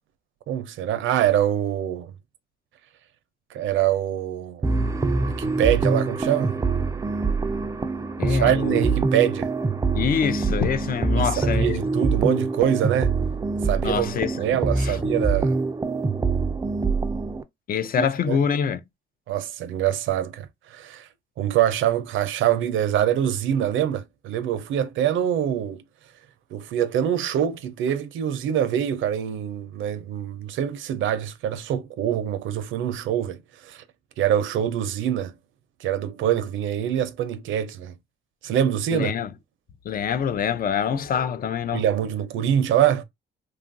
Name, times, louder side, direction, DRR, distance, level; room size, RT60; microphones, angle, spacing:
voice 1, 0.5-2.1 3.5-4.6 5.3-6.6 8.3-9.5 11.1-13.2 13.6-15.6 18.0-18.4 19.3-21.1 21.4-25.8 26.5-33.8 34.2-35.3 35.8-37.9 38.4-39.1 41.7-43.0, right 10 dB, 80° right, 0.5 m, -24 dB
sound 1, 4.6-17.4, right 3 dB, 15° right, 0.3 m, -24 dB
voice 2, 8.2-8.8 9.9-11.8 13.8-15.0 17.7-18.8 38.9-39.3 39.8-41.8, left 7 dB, 45° left, 0.5 m, -25 dB
2.9 x 2.4 x 2.5 m
cardioid pair, 90°, 20 cm